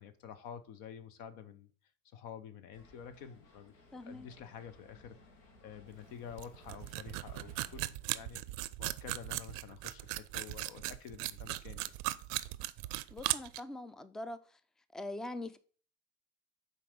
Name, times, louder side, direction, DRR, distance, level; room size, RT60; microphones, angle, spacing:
voice 1, 0.0-1.7 2.1-3.7 4.0-5.2 5.6-8.4 8.8-11.9, left 8 dB, 60° left, 0.8 m, -49 dB
sound 1, 2.7-7.9, left 3 dB, 75° left, 1.3 m, -61 dB
voice 2, 3.9-4.3 13.1-14.6 14.9-15.6, left 2 dB, ahead, 0.3 m, -43 dB
sound 2, 5.9-6.0 6.3-13.6, right 18 dB, 70° right, 0.5 m, -38 dB
5.7 x 3.9 x 5.0 m
hypercardioid pair, 65°, 40 cm